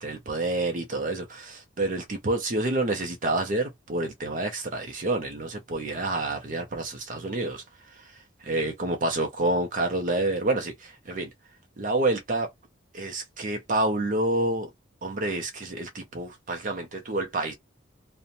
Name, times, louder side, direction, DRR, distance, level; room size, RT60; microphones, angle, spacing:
voice 1, 0.0-7.6 8.0-8.1 8.4-11.3 11.8-12.5 12.9-14.7 15.0-17.5, right 2 dB, 40° right, 0.5 m, -28 dB
2.5 x 2.0 x 2.7 m
head